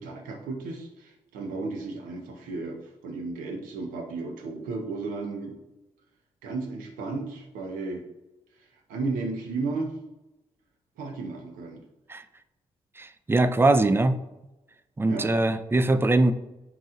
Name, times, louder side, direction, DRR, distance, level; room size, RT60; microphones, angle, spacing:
voice 1, 0.0-5.6 6.4-8.0 8.9-10.0 11.0-11.8 15.0-15.3, right 3 dB, 85° right, 3 dB, 0.7 m, -34 dB
voice 2, 13.0-14.2 15.0-16.3, right 2 dB, 15° right, 11 dB, 0.4 m, -22 dB
3.8 x 2.9 x 3.7 m, 0.95 s
supercardioid pair, 50°, 14 cm